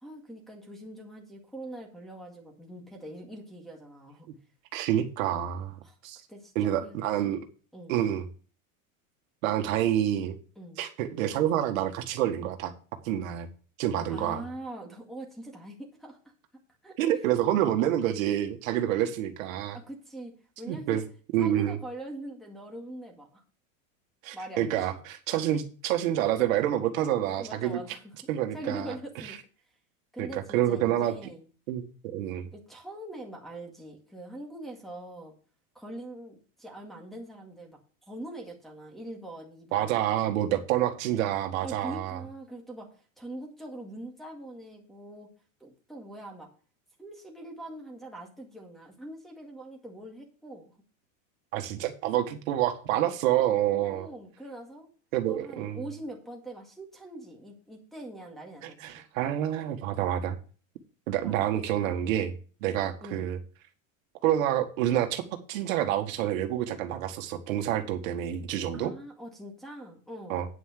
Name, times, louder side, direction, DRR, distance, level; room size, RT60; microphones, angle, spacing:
voice 1, 0.0-4.3 5.8-6.0 6.3-7.0 7.7-8.0 10.6-10.8 14.1-16.2 16.8-16.9 19.7-20.3 20.6-21.0 21.4-23.4 24.3-25.0 27.4-29.4 30.1-31.5 32.5-35.3 35.8-37.8 38.1-40.4 41.6-42.9 43.2-45.3 45.6-46.5 47.0-50.8 53.7-54.9 55.3-59.0 61.2-61.5 63.0-63.3 68.7-70.4, right 1 dB, ahead, -2 dB, 2.0 m, -43 dB
voice 2, 4.7-5.8 6.0-6.2 6.6-7.4 7.9-8.2 9.4-10.4 10.8-12.7 13.0-13.5 13.8-14.4 17.0-19.8 20.7-21.0 21.3-21.8 24.2-27.8 28.3-28.9 30.2-31.1 31.7-32.5 39.7-42.2 51.5-54.1 55.1-55.8 58.6-60.4 61.1-62.3 62.6-63.4 64.2-65.2 65.5-68.9 70.3-70.5, right 11 dB, 70° right, 6 dB, 1.8 m, -28 dB
9.3 x 5.9 x 6.7 m, 0.38 s
supercardioid pair, 160°, 41 cm